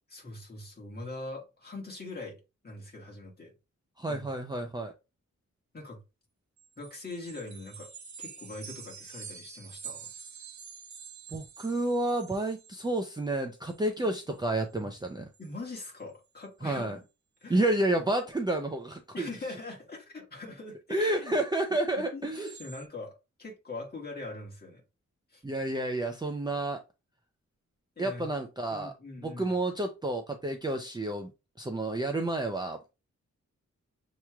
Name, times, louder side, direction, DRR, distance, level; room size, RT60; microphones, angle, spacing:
voice 1, 0.1-3.5 4.1-4.3 5.7-6.0 6.8-7.9 8.2-10.1 14.8-14.9 15.4-16.9 17.4-17.6 19.1-21.4 22.0-24.8 25.3-25.4 27.9-28.4 28.7-29.5, left 2 dB, 35° left, 1.7 m, -42 dB
voice 2, 4.0-4.9 11.3-15.3 16.6-17.0 17.5-19.3 20.9-22.5 25.4-26.8 28.0-28.9 29.2-31.3 31.6-32.8, right 2 dB, 15° right, 0.4 m, -30 dB
sound 1, 6.6-13.2 13.5-13.9 14.2-14.4 14.8-15.0 15.3-15.5 16.0-16.1 16.4-16.8 22.3-22.8, right 7 dB, 70° right, 0.7 m, -47 dB
6.8 x 3.0 x 2.3 m
wide cardioid pair, 160°, 30 cm